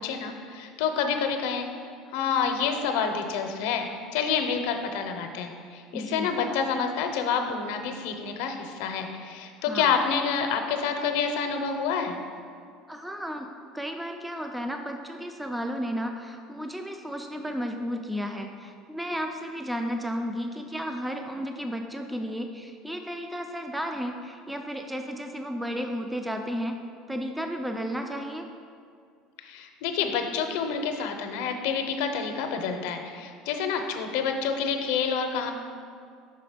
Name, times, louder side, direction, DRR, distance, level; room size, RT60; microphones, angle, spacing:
voice 1, 0.0-1.7 2.1-12.2 29.4-35.5, left 6 dB, 80° left, 5 dB, 0.6 m, -28 dB
voice 2, 5.9-6.3 9.7-10.0 12.9-26.8 27.1-28.5, equal, 5° right, 4 dB, 0.3 m, -33 dB
5.8 x 3.9 x 5.0 m, 2.3 s
cardioid pair, 150°, 0 cm